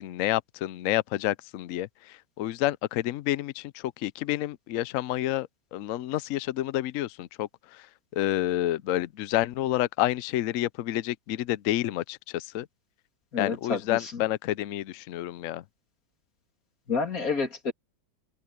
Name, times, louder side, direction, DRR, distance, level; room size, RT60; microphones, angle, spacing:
voice 1, 0.0-7.9 8.1-12.7 13.4-15.6, left 14 dB, 80° left, 0.7 m, -29 dB
voice 2, 13.3-14.2 16.9-17.7, left 4 dB, 50° left, 3.3 m, -29 dB
open air
omnidirectional pair, 2.0 m